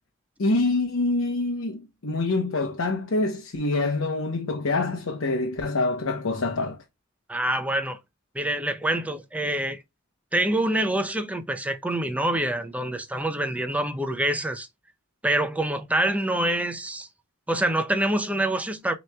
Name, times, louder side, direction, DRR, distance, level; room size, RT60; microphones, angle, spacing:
voice 1, 0.4-6.8, left 2 dB, 80° left, 0.8 m, -26 dB
voice 2, 7.3-8.0 8.3-9.8 10.3-14.7 15.2-17.1 17.5-18.9, right 1 dB, 5° right, 0.5 m, -26 dB
6.2 x 3.0 x 2.2 m
head